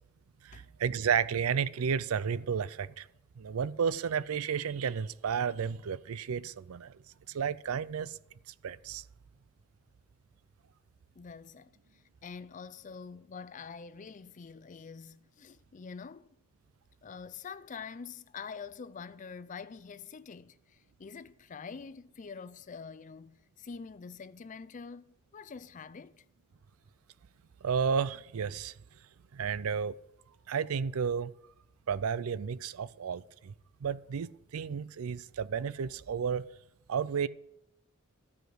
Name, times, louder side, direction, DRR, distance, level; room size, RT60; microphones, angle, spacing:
voice 1, 0.4-3.1 3.4-6.9 7.3-8.2 8.5-9.0 27.6-28.7 29.3-29.9 30.5-31.3 31.9-33.5 33.8-36.4 36.9-37.3, right 7 dB, 85° right, 0.4 m, -32 dB
voice 2, 11.2-16.3 17.0-26.2, left 5 dB, 35° left, 0.4 m, -46 dB
12.5 x 5.0 x 7.7 m
head